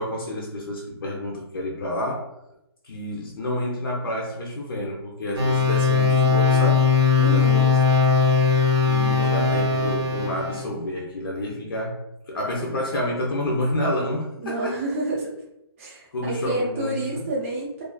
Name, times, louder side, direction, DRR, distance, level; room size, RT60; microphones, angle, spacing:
voice 1, 0.0-2.3 2.8-6.9 7.2-7.6 8.9-14.8 16.1-17.2, left 1 dB, 60° left, -2 dB, 0.5 m, -29 dB
sound 1, 5.4-10.6, left 5 dB, 85° right, 0.9 m, -19 dB
voice 2, 7.2-7.7 14.4-15.3 15.8-17.8, right 2 dB, 30° right, -5 dB, 0.5 m, -29 dB
2.4 x 2.4 x 2.3 m, 0.84 s
hypercardioid pair, 165°, 14 cm